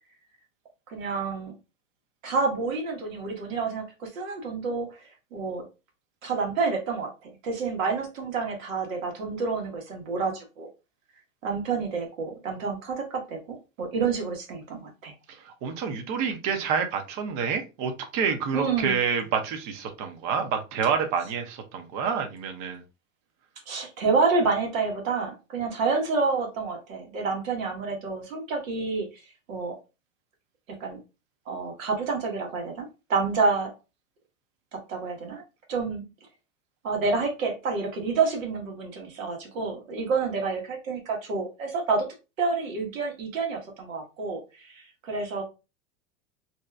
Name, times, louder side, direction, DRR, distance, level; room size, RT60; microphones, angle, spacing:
voice 1, 0.9-1.5 2.2-5.0 5.3-5.6 6.2-10.7 11.4-15.1 18.5-19.0 23.7-29.2 29.5-29.8 30.8-31.0 31.5-33.7 34.7-35.4 35.7-36.0 36.8-42.1 42.4-45.4, right 4 dB, 80° right, 1.3 m, -28 dB
voice 2, 15.3-22.8, right 6 dB, 45° right, 0.8 m, -28 dB
2.8 x 2.3 x 3.3 m
hypercardioid pair, 100°, 40 cm